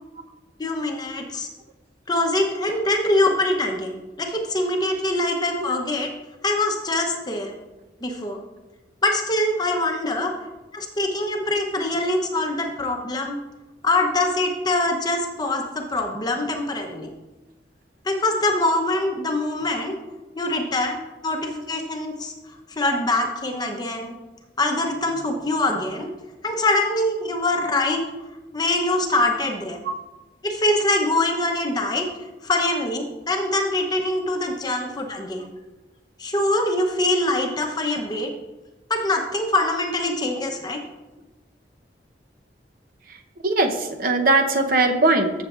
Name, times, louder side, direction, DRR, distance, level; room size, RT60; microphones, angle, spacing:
voice 1, 0.6-1.5 2.1-6.1 6.4-7.5 8.0-8.4 9.0-10.3 10.7-13.4 13.8-17.1 18.0-20.0 20.4-22.3 22.7-24.2 24.6-26.1 26.4-28.0 28.5-29.8 30.4-32.1 32.4-35.5 36.2-38.3 38.9-40.8, left 2 dB, 25° left, 3 dB, 0.8 m, -24 dB
voice 2, 43.4-45.3, right 2 dB, 55° right, 5 dB, 0.8 m, -20 dB
14.5 x 6.5 x 2.4 m, 1.1 s
head